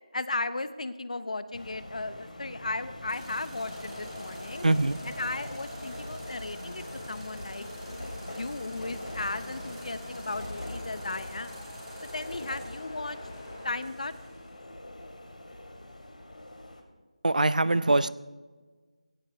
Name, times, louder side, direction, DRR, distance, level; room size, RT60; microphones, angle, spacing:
voice 1, 0.1-4.7 5.1-7.7 8.3-11.6 12.0-13.2 13.6-14.1, left 3 dB, 65° left, 0.9 m, -36 dB
sound 1, 1.5-16.8, left 1 dB, 85° left, 2.9 m, -43 dB
sound 2, 3.1-14.5, right 2 dB, 10° right, 2.9 m, -52 dB
sound 3, 3.6-13.7, left 1 dB, 35° left, 5.6 m, -44 dB
voice 2, 4.6-5.1 17.2-18.1, right 2 dB, 85° right, 0.6 m, -23 dB
17.5 x 17.0 x 3.2 m
figure-of-eight pair, 170°, 4 cm